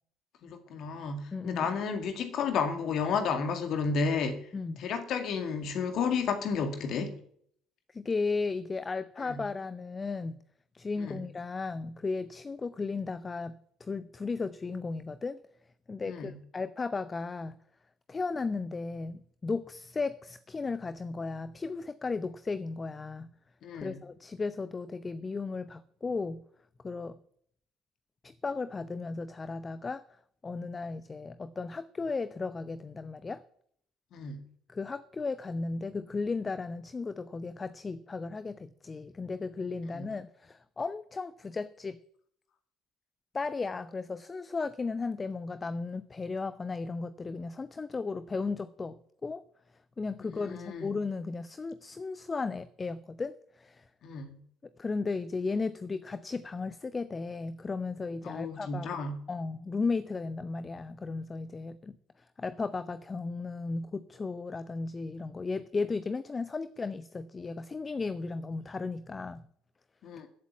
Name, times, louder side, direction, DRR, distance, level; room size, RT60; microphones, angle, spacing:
voice 1, 0.4-4.4 4.8-7.1 9.3-9.4 11.0-11.2 16.0-16.4 23.6-24.0 34.1-34.5 39.9-40.1 50.3-51.0 54.0-54.4 58.2-59.2 70.0-70.3, left 5 dB, 50° left, 2.1 m, -32 dB
voice 2, 1.3-1.7 4.5-4.8 7.9-10.4 10.7-15.4 15.9-17.6 18.1-23.3 23.8-26.4 26.8-27.2 28.2-30.0 30.4-33.4 34.7-42.0 43.3-49.4 50.0-53.8 54.8-58.9 59.3-62.0 62.4-69.4, left 4 dB, 25° left, 0.8 m, -35 dB
14.5 x 8.2 x 9.3 m
figure-of-eight pair, 55°, 0 cm